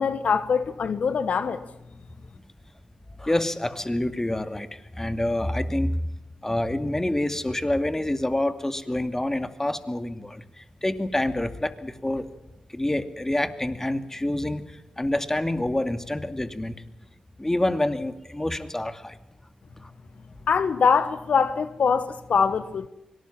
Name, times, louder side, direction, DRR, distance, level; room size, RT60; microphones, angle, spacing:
voice 1, 0.0-1.6 20.5-22.9, left 6 dB, 70° left, 1.2 m, -23 dB
voice 2, 3.2-4.7 5.0-5.9 6.4-12.3 12.7-14.6 15.0-16.7 17.4-19.2, left 1 dB, 20° left, 2.4 m, -27 dB
24.5 x 19.0 x 7.3 m
supercardioid pair, 40°, 2 cm